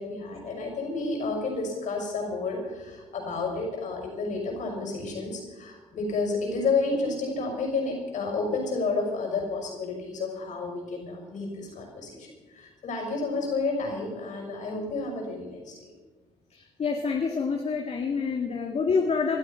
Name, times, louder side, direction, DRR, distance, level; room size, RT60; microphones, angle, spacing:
voice 1, 0.0-12.3 12.5-15.9, left 3 dB, 65° left, 2 dB, 6.1 m, -30 dB
voice 2, 16.5-19.4, left 5 dB, 50° left, 2 dB, 1.9 m, -27 dB
20.0 x 12.0 x 5.6 m, 1.3 s
supercardioid pair, 65°, 14 cm